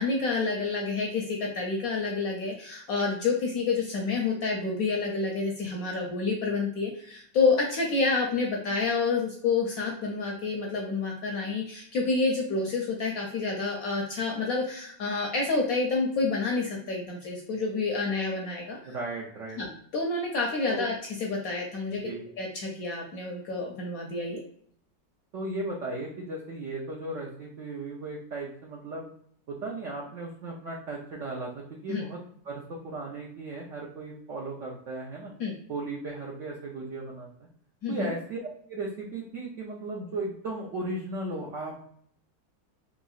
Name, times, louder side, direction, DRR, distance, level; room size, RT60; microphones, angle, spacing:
voice 1, 0.0-19.0 19.6-24.4 31.9-32.0 35.4-35.5 37.8-38.1, left 4 dB, 70° left, 0 dB, 0.8 m, -29 dB
voice 2, 18.9-19.6 20.7-20.9 22.0-22.2 25.3-29.1 29.5-35.3 35.7-37.5 37.9-38.4 38.7-41.7, right 2 dB, 75° right, -3 dB, 0.7 m, -36 dB
3.6 x 3.0 x 2.3 m, 0.63 s
omnidirectional pair, 2.0 m